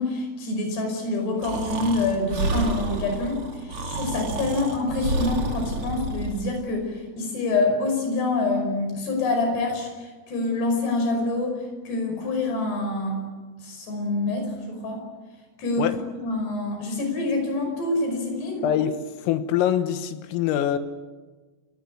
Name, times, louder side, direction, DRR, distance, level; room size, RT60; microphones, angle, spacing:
voice 1, 0.0-13.2 13.6-15.0 15.6-15.9 16.2-18.7, left 2 dB, 55° left, 4 dB, 7.3 m, -26 dB
Breathing, 1.4-6.5, right 2 dB, 40° right, 2.3 m, -30 dB
voice 2, 18.6-20.8, left 10 dB, 85° left, 10 dB, 3.8 m, -24 dB
29.0 x 17.5 x 8.7 m, 1.3 s
omnidirectional pair, 6.0 m